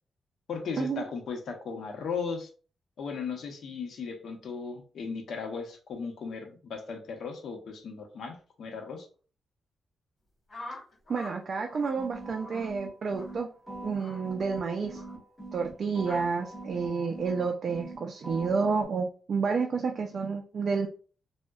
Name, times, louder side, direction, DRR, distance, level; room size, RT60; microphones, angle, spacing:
voice 1, 0.5-2.5 3.0-9.1, left 5 dB, 70° left, 4 dB, 0.7 m, -36 dB
sound 1, 10.5-11.4 11.6-12.0 12.4-12.7 13.1-13.3 13.9-14.2 14.9-15.1 16.0-16.2, left 2 dB, 35° left, 1.4 m, -44 dB
voice 2, 11.1-13.5 13.8-15.0 15.5-20.9, right 5 dB, 50° right, 3 dB, 0.3 m, -30 dB
sound 2, 12.0-13.4 13.7-15.7 16.0-18.0 18.2-18.9, right 2 dB, 10° right, 1.4 m, -42 dB
3.6 x 2.1 x 2.2 m, 0.39 s
wide cardioid pair, 140°, 0 cm